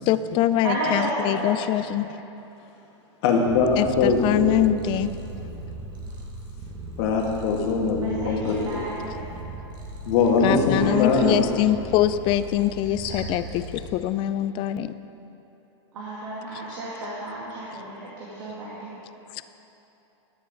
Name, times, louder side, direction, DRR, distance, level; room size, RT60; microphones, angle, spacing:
voice 1, 0.1-2.1 3.8-5.1 10.4-14.9, left 12 dB, 35° left, 13 dB, 0.4 m, -23 dB
voice 2, 0.6-1.6 8.0-9.3 10.2-11.4 15.9-18.9, right 1 dB, 80° right, -7 dB, 2.3 m, -33 dB
voice 3, 3.2-4.6 7.0-8.9 10.0-11.4 13.0-13.2, left 4 dB, 55° left, 0 dB, 1.6 m, -22 dB
Purr, 3.5-13.9, right 2 dB, 30° right, 1.4 m, -38 dB
12.0 x 7.0 x 5.2 m, 3.0 s
hypercardioid pair, 130°, 15 cm